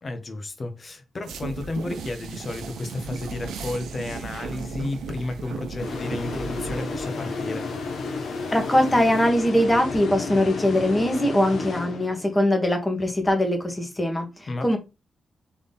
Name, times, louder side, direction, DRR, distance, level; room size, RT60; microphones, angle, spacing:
voice 1, 0.0-7.7 14.5-14.8, left 2 dB, 45° left, 1.2 m, -32 dB
sound 1, 1.2-9.3, right 4 dB, 90° right, 0.7 m, -37 dB
sound 2, 5.8-12.5, left 4 dB, 75° left, 1.0 m, -32 dB
voice 2, 8.5-14.8, left 1 dB, 20° left, 1.6 m, -22 dB
3.7 x 3.4 x 4.1 m
supercardioid pair, 55°, 0 cm